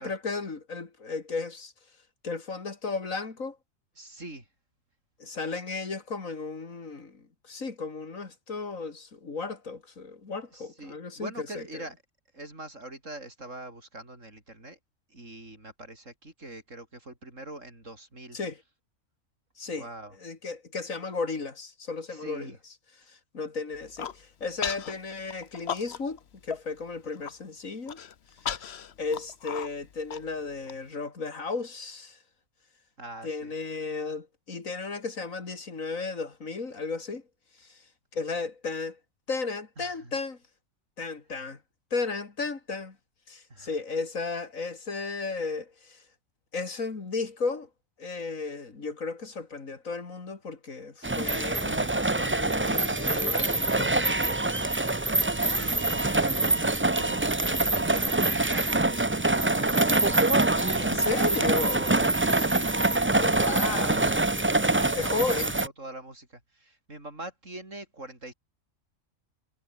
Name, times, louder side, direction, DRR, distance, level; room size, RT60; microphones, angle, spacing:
voice 1, 0.0-1.7 2.2-3.6 5.2-11.8 18.3-18.6 19.6-19.9 20.2-22.6 23.1-28.0 28.4-28.6 29.0-32.2 33.2-37.2 37.7-37.8 38.1-39.0 39.3-40.4 41.0-41.6 41.9-43.0 43.3-46.0 46.5-47.7 48.0-54.7 60.7-61.8 63.1-64.0 64.9-65.5, left 4 dB, 85° left, 3.1 m, -34 dB
voice 2, 4.0-4.4 10.5-12.0 12.3-14.8 15.1-18.4 19.8-20.1 22.1-22.6 33.0-33.5 39.8-40.2 43.5-43.8 55.4-61.1 61.4-62.7 63.1-66.3 66.6-68.3, right 2 dB, 70° right, 7.1 m, -43 dB
Human voice, 23.7-24.2 24.6-24.9 25.3-26.2 26.5-26.6 27.0-27.3 27.9-30.7, left 8 dB, 55° left, 1.2 m, -35 dB
sound 1, 51.0-65.7, right 2 dB, 15° right, 0.5 m, -25 dB
omnidirectional pair, 1.4 m